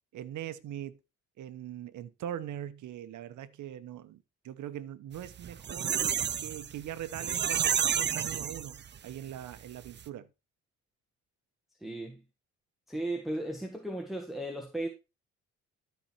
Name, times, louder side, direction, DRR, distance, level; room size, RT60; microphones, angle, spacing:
voice 1, 0.1-1.0 1.4-6.0 6.4-10.3, right 11 dB, 75° right, 1.0 m, -41 dB
sound 1, 5.2-9.1 9.5-9.6 9.9-10.0, right 8 dB, 35° right, 0.6 m, -30 dB
voice 2, 11.8-12.2 12.9-14.9, right 1 dB, ahead, 1.5 m, -35 dB
13.0 x 4.6 x 4.4 m
cardioid pair, 90°, 30 cm